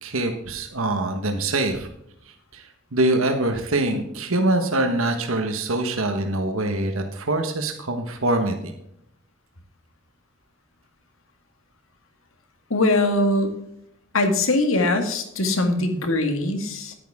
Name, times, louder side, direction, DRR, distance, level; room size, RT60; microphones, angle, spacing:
voice 1, 0.0-1.9 2.5-8.7, right 2 dB, 80° right, 5 dB, 1.4 m, -24 dB
voice 2, 12.7-13.6 14.1-16.9, left 2 dB, 75° left, 6 dB, 1.9 m, -21 dB
11.0 x 10.0 x 3.6 m, 0.75 s
head